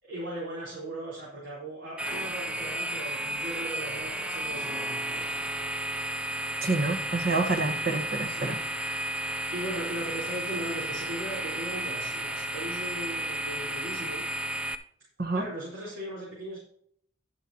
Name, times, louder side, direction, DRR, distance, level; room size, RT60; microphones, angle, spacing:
voice 1, 0.0-5.3 7.6-7.8 8.3-8.6 9.5-14.3 15.3-16.6, right 1 dB, 80° right, -6 dB, 4.4 m, -38 dB
sound 1, 2.0-14.8, right 1 dB, 5° right, 0.5 m, -33 dB
voice 2, 6.6-8.6 15.2-15.4, right 3 dB, 50° right, 7 dB, 1.3 m, -28 dB
11.0 x 11.0 x 2.9 m, 0.66 s
head